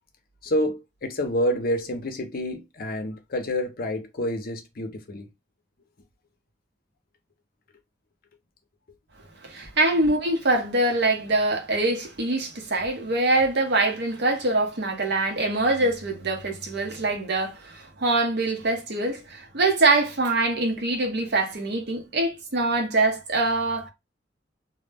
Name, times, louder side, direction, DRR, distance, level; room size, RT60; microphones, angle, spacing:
voice 1, 0.4-5.3, equal, 50° left, 0.6 m, -28 dB
voice 2, 9.4-23.9, right 2 dB, 60° right, 0.7 m, -24 dB
2.1 x 2.0 x 3.3 m
head